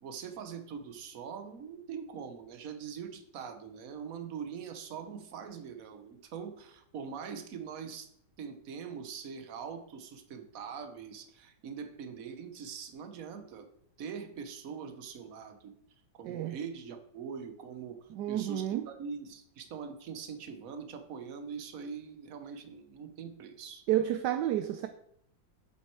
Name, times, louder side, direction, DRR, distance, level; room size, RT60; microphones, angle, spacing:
voice 1, 0.0-8.1 8.4-13.7 14.0-15.7 16.1-23.8, right 6 dB, 55° right, 8 dB, 1.3 m, -43 dB
voice 2, 18.1-18.9 23.9-24.9, right 12 dB, 75° right, 9 dB, 1.1 m, -30 dB
8.5 x 7.5 x 4.7 m, 0.70 s
omnidirectional pair, 2.0 m